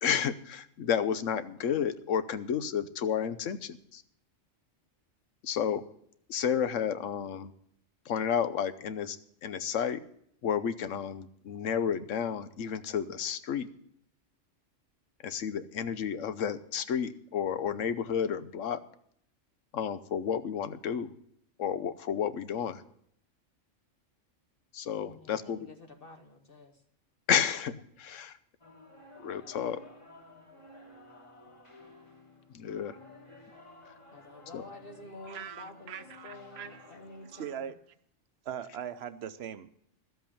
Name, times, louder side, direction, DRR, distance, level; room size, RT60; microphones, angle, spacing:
voice 1, 0.0-4.0 5.4-5.8 6.3-7.5 8.1-9.2 9.4-10.0 10.4-13.7 15.2-18.8 19.7-21.1 21.6-22.8 24.7-25.7 27.3-28.4 29.2-29.8 32.5-32.9 34.5-34.6, left 8 dB, 85° left, 12 dB, 1.1 m, -31 dB
voice 2, 25.1-26.8 34.1-37.6, left 2 dB, 50° left, 5 dB, 1.2 m, -49 dB
sound 1, 28.6-37.5, left 2 dB, 25° left, 1.8 m, -53 dB
voice 3, 35.2-37.0 37.2-37.8 38.4-39.7, right 9 dB, 60° right, 13 dB, 0.9 m, -41 dB
13.0 x 8.0 x 7.0 m, 0.69 s
omnidirectional pair, 1.3 m